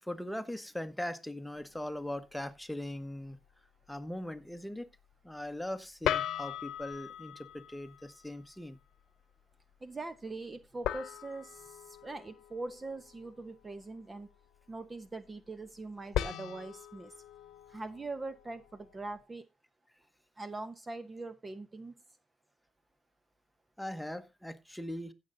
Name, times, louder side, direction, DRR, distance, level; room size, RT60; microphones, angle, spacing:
voice 1, 0.0-3.4 3.9-4.9 5.2-8.8 23.8-25.1, left 1 dB, 5° left, 1.2 m, -40 dB
sound 1, 1.6-1.8 6.0-8.4 10.8-13.4 16.1-19.2, left 11 dB, 85° left, 0.9 m, -39 dB
voice 2, 9.8-14.3 14.7-17.1 17.7-19.4 20.4-21.9, right 2 dB, 25° right, 0.8 m, -42 dB
15.5 x 6.8 x 3.9 m
cardioid pair, 90°, 0 cm